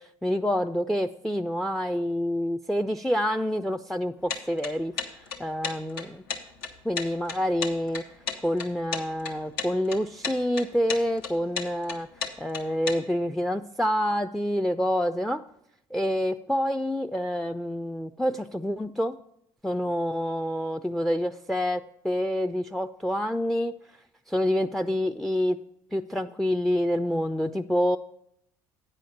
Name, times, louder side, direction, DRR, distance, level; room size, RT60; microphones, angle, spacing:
voice 1, 0.0-6.2 6.8-8.0 8.4-12.1 12.4-15.4 15.9-19.2 19.6-23.8 24.3-25.6 25.9-28.0, equal, ahead, 11 dB, 0.3 m, -27 dB
sound 1, 4.3-13.0, left 5 dB, 85° left, 1.1 m, -33 dB
8.9 x 5.1 x 7.0 m, 0.76 s
hypercardioid pair, 70°, 12 cm